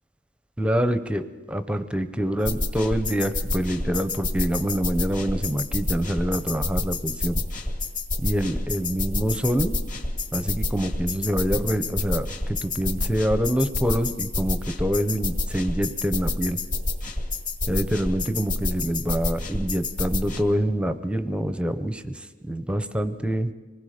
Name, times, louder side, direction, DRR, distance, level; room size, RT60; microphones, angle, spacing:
voice 1, 0.6-7.4 8.2-9.8 10.3-16.6 17.7-23.5, equal, 5° right, 10 dB, 0.6 m, -26 dB
sound 1, 2.4-20.4, left 2 dB, 40° left, 1.9 m, -29 dB
26.0 x 20.0 x 5.0 m, 1.3 s
head